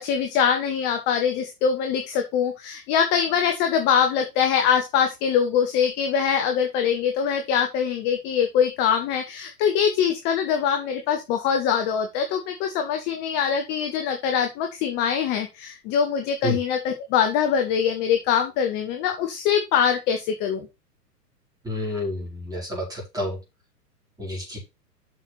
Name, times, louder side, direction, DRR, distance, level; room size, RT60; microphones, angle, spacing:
voice 1, 0.0-20.7, left 7 dB, 20° left, 5 dB, 1.0 m, -23 dB
voice 2, 21.6-23.4 24.2-24.6, left 1 dB, 5° right, -3 dB, 5.0 m, -29 dB
7.8 x 6.4 x 4.2 m, 0.25 s
figure-of-eight pair, 110°, 48 cm